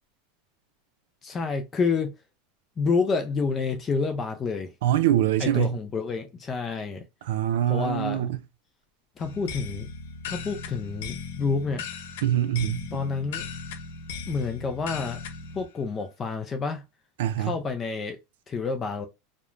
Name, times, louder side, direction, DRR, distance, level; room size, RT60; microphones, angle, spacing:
voice 1, 1.2-2.1 2.8-4.7 5.4-7.0 7.7-8.3 9.2-9.9 10.3-11.8 12.9-13.4 14.3-15.2 15.5-16.8 17.4-18.2 18.5-19.1, left 4 dB, 20° left, 0.3 m, -28 dB
voice 2, 4.8-5.8 7.2-8.4 12.2-12.9 17.2-17.6, right 11 dB, 80° right, 0.4 m, -24 dB
sound 1, 9.2-15.7, left 5 dB, 75° left, 0.5 m, -37 dB
3.0 x 2.1 x 2.4 m
supercardioid pair, 155°, 0 cm